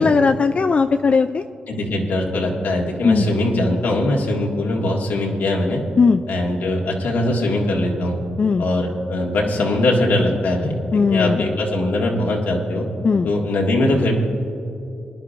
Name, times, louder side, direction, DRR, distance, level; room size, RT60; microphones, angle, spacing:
voice 1, 0.0-1.4 3.0-3.3 6.0-6.2 8.4-8.6 10.9-11.5 13.0-13.3, left 5 dB, 40° left, 8 dB, 0.3 m, -17 dB
voice 2, 1.7-5.8 6.3-8.2 8.6-10.8 11.1-12.9 13.2-14.2, left 1 dB, 80° left, -1 dB, 1.8 m, -21 dB
22.0 x 10.5 x 2.5 m, 2.8 s
cardioid pair, 80°, 3 cm